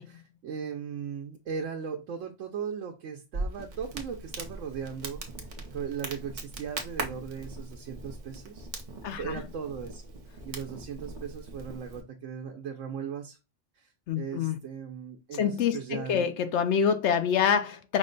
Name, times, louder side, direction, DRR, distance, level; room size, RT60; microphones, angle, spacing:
voice 1, 0.0-5.2 5.7-8.7 9.2-10.0 10.4-13.4 13.7-13.9 14.1-16.3, right 7 dB, 85° right, 1.0 m, -38 dB
Crackle, 3.3-12.0, right 2 dB, 45° right, 0.8 m, -40 dB
voice 2, 9.0-9.4 14.1-14.6 15.3-18.0, left 7 dB, 70° left, 0.9 m, -26 dB
5.2 x 2.1 x 3.8 m
omnidirectional pair, 1.3 m